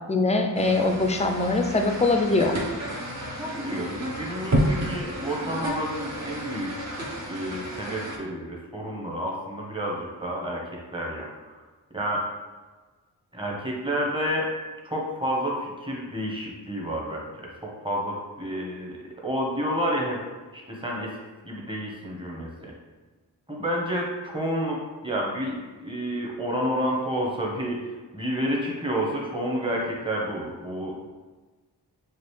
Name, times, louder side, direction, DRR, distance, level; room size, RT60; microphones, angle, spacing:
voice 1, 0.1-2.6, left 2 dB, 15° left, 4 dB, 0.4 m, -22 dB
sound 1, 0.5-8.2, right 1 dB, 40° right, 0.9 m, -31 dB
voice 2, 3.4-6.7 7.3-11.6 11.9-12.3 13.3-14.5 14.8-20.2 20.5-21.2 21.4-22.7 23.5-31.1, equal, 10° right, -2 dB, 1.0 m, -30 dB
5.1 x 2.5 x 3.2 m, 1.3 s
cardioid pair, 75°, 41 cm